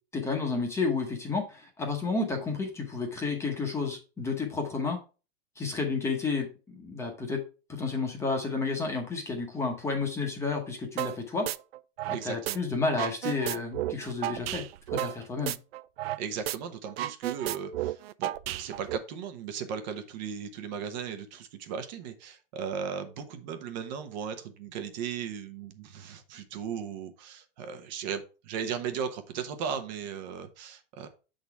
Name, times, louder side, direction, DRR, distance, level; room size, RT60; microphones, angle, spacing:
voice 1, 0.1-5.0 5.6-7.4 7.7-11.5 12.1-15.5, left 4 dB, 10° left, 2 dB, 0.9 m, -31 dB
sound 1, 11.0-11.2 11.5-12.6 12.9-16.2 16.5-16.6 16.9-19.0, right 14 dB, 80° right, 0.5 m, -32 dB
voice 2, 12.1-12.6 16.2-31.1, right 7 dB, 45° right, 8 dB, 1.0 m, -37 dB
7.1 x 3.9 x 4.6 m, 0.33 s
supercardioid pair, 160°, 30 cm